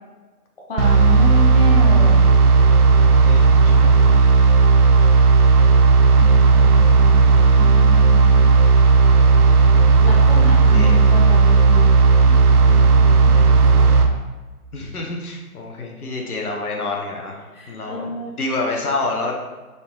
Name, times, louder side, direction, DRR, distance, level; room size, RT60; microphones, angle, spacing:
voice 1, 0.7-2.3 6.2-7.2 7.6-8.5 10.0-11.9 12.3-13.8 17.5-18.4, left 1 dB, 40° left, -3 dB, 0.7 m, -29 dB
sound 1, 0.8-14.1, right 4 dB, 80° right, 0.7 m, -13 dB
voice 2, 3.2-4.0 10.6-11.1 14.7-19.3, left 2 dB, 75° left, 0 dB, 1.1 m, -28 dB
4.0 x 2.9 x 3.6 m, 1.3 s
hypercardioid pair, 165°, 45 cm